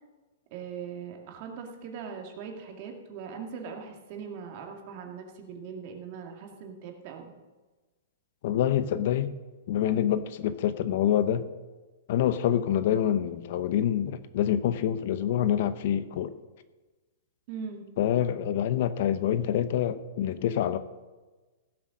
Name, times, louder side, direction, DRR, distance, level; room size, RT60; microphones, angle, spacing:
voice 1, 0.5-7.3 17.5-17.9, right 6 dB, 40° right, 2 dB, 2.2 m, -40 dB
voice 2, 8.4-9.3 9.7-11.5 12.1-16.3 18.0-20.8, left 10 dB, 50° left, 13 dB, 0.7 m, -26 dB
15.5 x 7.8 x 6.3 m, 1.2 s
hypercardioid pair, 160°, 0 cm